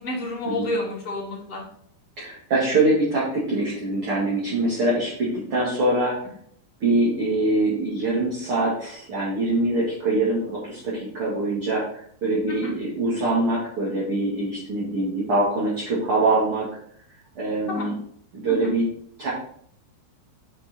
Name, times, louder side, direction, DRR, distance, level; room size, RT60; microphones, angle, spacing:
voice 1, 0.0-1.6 12.5-12.7 17.7-17.9 18.5-18.7, left 1 dB, 15° left, -8 dB, 3.4 m, -29 dB
voice 2, 2.2-6.1 6.8-16.7 17.4-17.9 18.3-18.8 19.2-19.3, right 2 dB, 40° right, -7 dB, 2.2 m, -24 dB
8.1 x 5.8 x 4.3 m, 0.64 s
omnidirectional pair, 5.2 m